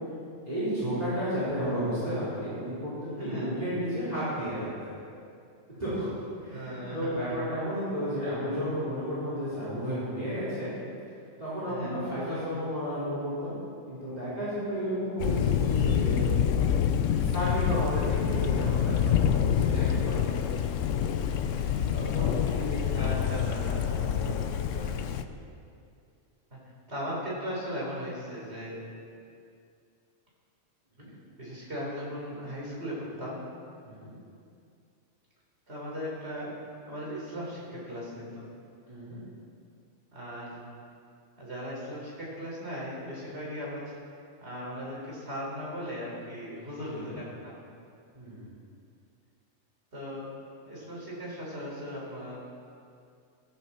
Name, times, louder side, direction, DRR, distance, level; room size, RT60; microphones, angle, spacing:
voice 1, 0.4-4.9 5.8-6.1 6.4-10.7 11.4-13.5 13.9-16.2 17.2-20.6 21.5-22.8 23.1-25.1 31.0-31.1 33.8-33.9 38.9-39.2 46.9-47.1 48.1-48.5, equal, 30° right, -11 dB, 5.0 m, -33 dB
voice 2, 3.2-3.6 6.5-7.4 11.6-12.0 21.2-21.5 21.8-21.9 22.9-23.8 26.5-26.6 26.9-28.8 31.4-33.4 35.7-36.5 36.9-38.4 40.1-40.6 41.4-43.9 44.4-47.6 49.9-50.3 50.6-52.4, equal, 60° right, -5 dB, 4.5 m, -38 dB
Thunder, 15.2-25.2, left 8 dB, 90° left, 1.0 m, -27 dB
16.5 x 14.5 x 4.4 m, 2.4 s
omnidirectional pair, 1.3 m